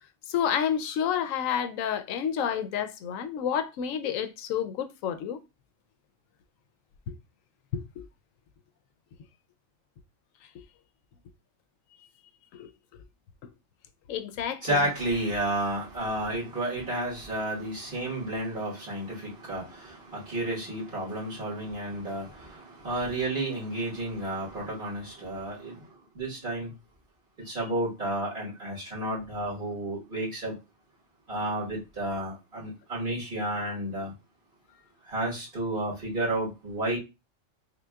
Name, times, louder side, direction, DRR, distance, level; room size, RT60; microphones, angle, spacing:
voice 1, 0.3-5.4 7.1-7.2 7.7-8.0 10.5-10.6 12.5-12.7 14.1-14.8, left 8 dB, 80° left, 1.0 m, -30 dB
voice 2, 14.6-25.9 26.1-26.7 27.4-30.5 31.3-34.1 35.1-37.0, right 1 dB, 40° right, 1.6 m, -31 dB
5.8 x 2.2 x 2.3 m
omnidirectional pair, 1.4 m